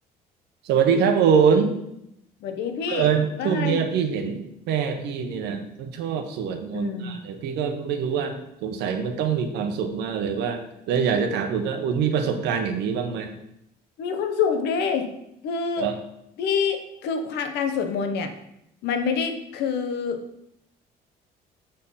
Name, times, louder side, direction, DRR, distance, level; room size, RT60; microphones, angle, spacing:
voice 1, 0.6-1.8 2.9-13.3 15.8-15.9, right 6 dB, 85° right, 6 dB, 1.1 m, -24 dB
voice 2, 2.4-3.1 3.4-3.8 6.7-7.2 14.0-15.1 15.4-15.9 16.4-18.3 18.8-20.2, left 6 dB, 80° left, 6 dB, 1.0 m, -26 dB
6.4 x 4.5 x 5.6 m, 0.80 s
cardioid pair, 110°, 17 cm